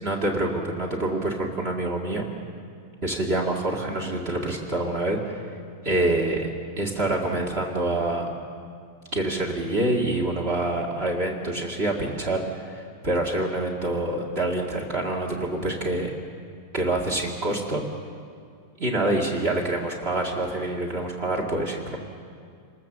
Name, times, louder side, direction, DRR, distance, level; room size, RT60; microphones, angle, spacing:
voice 1, 0.0-2.3 3.0-5.4 5.8-8.3 9.1-16.1 16.7-17.8 18.8-22.0, right 2 dB, 35° right, 2 dB, 0.9 m, -26 dB
28.5 x 20.0 x 7.3 m, 2.3 s
omnidirectional pair, 4.6 m